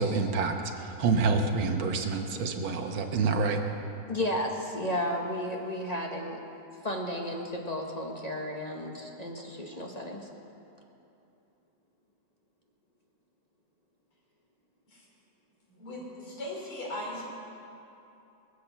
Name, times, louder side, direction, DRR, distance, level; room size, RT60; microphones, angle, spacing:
voice 1, 0.0-3.6, right 4 dB, 70° right, 4 dB, 1.9 m, -27 dB
voice 2, 4.1-6.4 6.8-10.3, left 1 dB, 25° left, 0 dB, 0.9 m, -33 dB
voice 3, 15.7-17.2, left 1 dB, 85° left, -3 dB, 4.3 m, -38 dB
21.5 x 8.2 x 7.0 m, 2.8 s
omnidirectional pair, 2.3 m